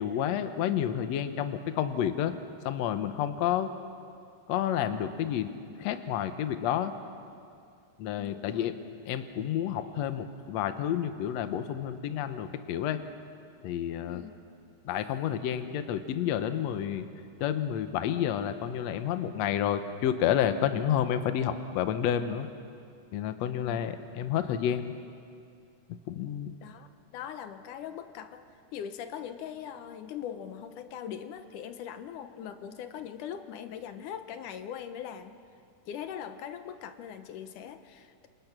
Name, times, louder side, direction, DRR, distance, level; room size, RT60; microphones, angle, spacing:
voice 1, 0.0-2.3 2.7-3.7 4.5-5.5 5.8-6.9 8.0-8.8 9.1-13.0 13.6-14.2 14.9-17.1 17.4-22.5 23.1-24.9 26.1-26.5, left 10 dB, 65° left, 9 dB, 2.0 m, -30 dB
voice 2, 8.2-8.7 14.1-14.3 23.6-23.8 26.6-28.5 28.7-35.4 35.9-38.3, left 9 dB, 85° left, 9 dB, 2.5 m, -41 dB
27.5 x 27.0 x 6.0 m, 2.4 s
omnidirectional pair, 3.6 m